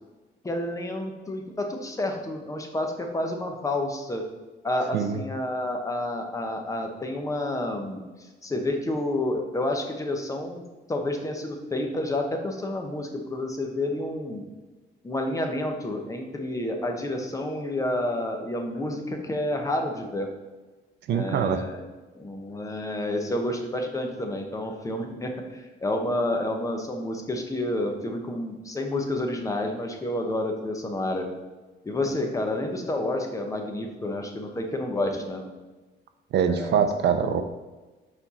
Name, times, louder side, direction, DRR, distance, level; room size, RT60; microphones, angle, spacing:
voice 1, 0.4-4.2 4.6-8.0 8.4-14.4 15.0-20.3 21.1-21.9 22.1-31.3 31.8-35.5 36.5-36.8, left 1 dB, 15° left, 3 dB, 0.8 m, -29 dB
voice 2, 21.1-21.6 36.3-37.4, right 7 dB, 65° right, 9 dB, 0.6 m, -23 dB
6.9 x 4.4 x 4.2 m, 1.2 s
cardioid pair, 155°, 19 cm